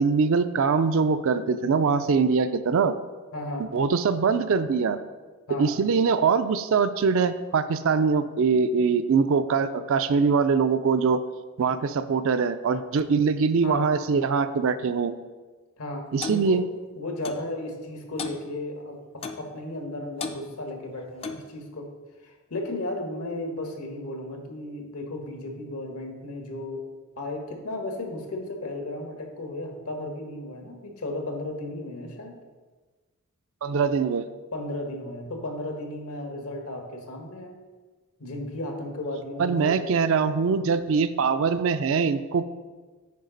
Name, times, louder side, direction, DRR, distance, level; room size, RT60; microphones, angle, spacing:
voice 1, 0.0-3.0 3.7-5.0 5.6-11.2 11.6-15.1 16.1-16.6 33.6-34.3 39.4-42.5, right 5 dB, 60° right, 11 dB, 0.4 m, -23 dB
voice 2, 3.3-3.7 5.5-5.7 13.6-13.9 15.8-16.6 17.0-21.9 22.2-26.8 27.2-32.4 34.5-37.6 38.2-39.8, left 1 dB, 75° left, 3 dB, 1.3 m, -34 dB
Clock, 16.2-16.4 17.2-17.5 18.2-18.4 19.2-19.5 20.2-20.4 21.2-21.5, left 4 dB, 25° left, 0.4 m, -34 dB
9.2 x 4.9 x 3.9 m, 1.3 s
head